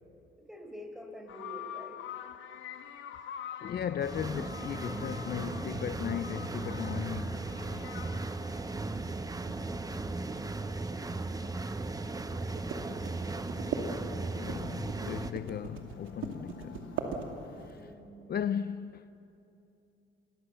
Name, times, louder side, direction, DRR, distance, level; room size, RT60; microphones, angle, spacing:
voice 1, 0.4-2.3 9.2-11.2 12.7-13.2 17.7-18.2, equal, ahead, 5.0 m, -49 dB
sound 1, 1.3-8.8 12.9-17.7, left 9 dB, 75° left, 1.3 m, -47 dB
voice 2, 3.6-7.9 14.3-16.9 17.5-17.9 18.3-19.1, left 9 dB, 50° left, 0.6 m, -37 dB
sound 2, 4.0-15.3, right 3 dB, 20° right, 1.1 m, -37 dB
sound 3, 6.8-17.8, right 5 dB, 80° right, 2.6 m, -41 dB
27.5 x 23.0 x 6.9 m
cardioid pair, 90°, 20 cm